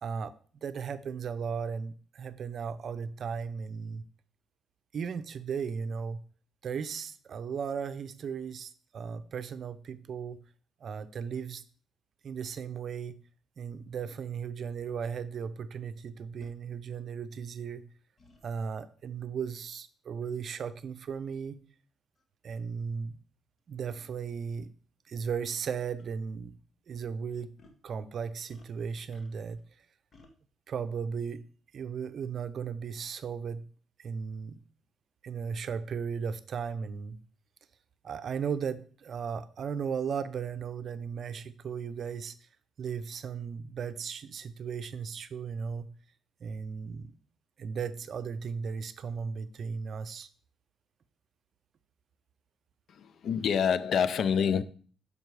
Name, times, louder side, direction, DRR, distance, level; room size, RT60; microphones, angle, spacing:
voice 1, 0.0-0.3 0.6-4.0 4.9-6.2 6.6-10.4 10.8-11.6 12.2-13.2 13.6-17.8 18.4-21.6 22.4-23.2 23.7-24.7 25.1-26.6 26.9-27.5 27.8-29.6 30.7-31.4 31.7-33.6 34.0-34.6 35.2-37.2 38.0-42.4 42.8-45.9 46.4-47.1 47.6-50.3, right 6 dB, 55° right, 0.6 m, -36 dB
sound 1, 14.9-15.0 16.4-16.6 18.2-18.4 20.2-20.4 21.2-21.3 22.2-22.3 22.5-22.7 24.0-24.1 25.4-25.7 26.0-26.1 27.6-27.8 28.5-29.6 30.1-30.3, left 2 dB, 40° left, 1.3 m, -59 dB
voice 2, 52.9-54.6, left 7 dB, 65° left, 0.5 m, -27 dB
6.6 x 5.3 x 4.7 m
cardioid pair, 90°, 0 cm